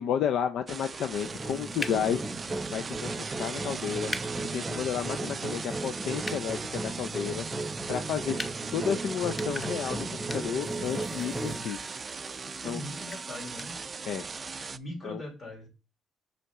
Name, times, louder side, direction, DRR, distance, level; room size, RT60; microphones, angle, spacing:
voice 1, 0.0-2.2 2.7-4.1 4.5-7.5 7.9-8.3 8.7-10.1 10.3-11.8 12.6-12.8 14.0-14.3 15.0-15.2, left 8 dB, 75° left, 9 dB, 0.4 m, -31 dB
sound 1, 0.7-14.8, right 4 dB, 35° right, 0.4 m, -39 dB
sound 2, 1.2-13.7, left 2 dB, 25° left, 0.7 m, -45 dB
sound 3, 1.2-11.6, right 2 dB, 10° right, 2.0 m, -36 dB
voice 2, 8.2-8.5 12.4-13.8 14.7-15.7, left 1 dB, 45° left, -2 dB, 3.5 m, -41 dB
6.4 x 5.5 x 3.6 m, 0.28 s
cardioid pair, 90°, 0 cm